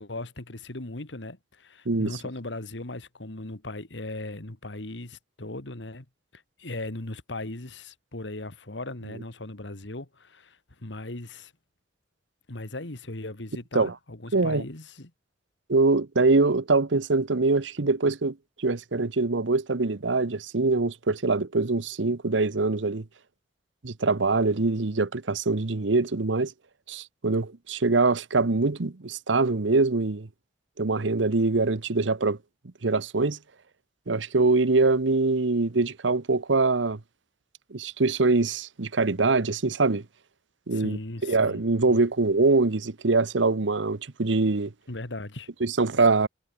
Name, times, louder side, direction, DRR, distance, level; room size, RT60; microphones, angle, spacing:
voice 1, 0.0-6.1 6.3-11.5 12.5-15.1 40.7-41.6 41.9-42.0 44.9-45.5, left 2 dB, 75° left, 2.1 m, -38 dB
voice 2, 1.9-2.2 13.7-13.9 14.3-14.6 15.7-23.0 23.8-26.5 26.9-30.3 30.8-32.4 32.8-33.4 34.1-37.0 37.7-40.0 40.7-44.7 45.6-46.3, right 3 dB, 85° right, 1.0 m, -24 dB
head